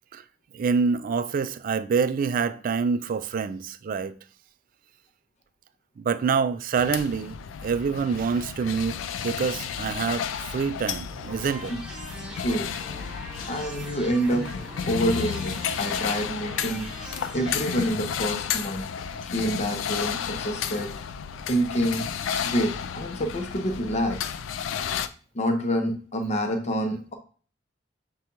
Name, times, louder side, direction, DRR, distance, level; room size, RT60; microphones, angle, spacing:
voice 1, 0.5-4.1 6.0-7.3 7.6-11.7, right 5 dB, 50° right, 0.3 m, -26 dB
sound 1, 6.8-25.1, left 8 dB, 90° left, 0.3 m, -32 dB
sound 2, 11.0-17.9, right 1 dB, 5° right, 0.9 m, -41 dB
voice 2, 12.4-12.7 13.5-14.5 14.8-16.9 17.3-18.9 19.3-20.9 21.5-22.1 22.4-24.3 25.3-27.2, equal, 35° left, 0.6 m, -27 dB
6.3 x 2.3 x 2.9 m
head